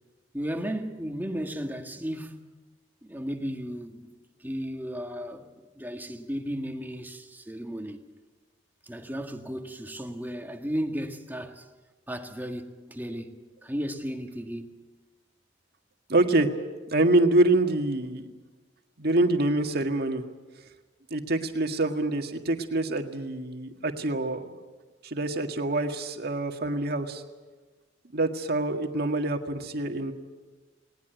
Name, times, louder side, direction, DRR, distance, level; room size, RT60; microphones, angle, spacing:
voice 1, 0.3-2.4 3.0-4.1 4.4-5.5 5.8-8.0 8.8-11.7 12.1-14.8, equal, 10° right, 1.7 m, -34 dB
voice 2, 16.1-16.5 16.9-18.3 19.0-20.2 21.1-24.5 25.0-27.2 28.1-30.1, right 2 dB, 60° right, 1.9 m, -25 dB
19.5 x 19.5 x 9.3 m
head